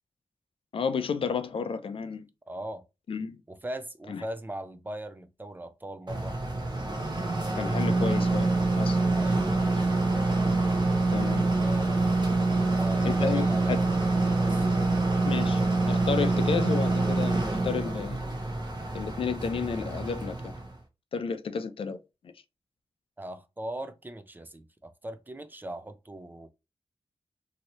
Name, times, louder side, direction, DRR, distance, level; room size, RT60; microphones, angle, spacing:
voice 1, 0.7-2.2 3.1-3.4 4.1-4.3 7.6-8.5 8.8-9.0 11.1-11.5 13.0-13.8 15.2-15.6 15.9-18.2 18.9-20.5 21.1-22.0 22.2-22.3, left 6 dB, 65° left, 0.4 m, -31 dB
voice 2, 2.5-2.8 3.5-6.4 9.2-9.4 11.5-12.0 12.5-14.0 14.3-14.7 23.2-26.5, right 1 dB, 20° right, 0.4 m, -39 dB
sound 1, 6.1-20.7, right 3 dB, 50° right, 0.8 m, -26 dB
3.0 x 2.7 x 2.9 m
wide cardioid pair, 105°, 10 cm